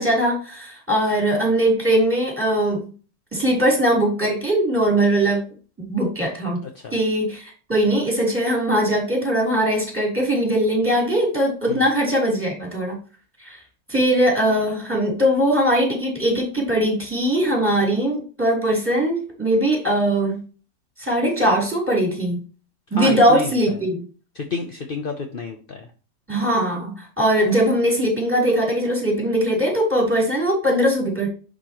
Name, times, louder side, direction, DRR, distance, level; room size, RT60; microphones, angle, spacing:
voice 1, 0.0-2.9 3.3-5.5 5.9-6.6 6.9-13.0 13.4-13.6 13.9-20.4 21.0-22.4 22.9-24.0 26.3-31.3, right 1 dB, 5° right, -3 dB, 3.3 m, -20 dB
voice 2, 6.6-6.9 11.7-11.8 23.0-23.5 24.4-25.9, left 4 dB, 50° left, 4 dB, 0.6 m, -29 dB
10.5 x 5.1 x 2.9 m, 0.37 s
omnidirectional pair, 1.9 m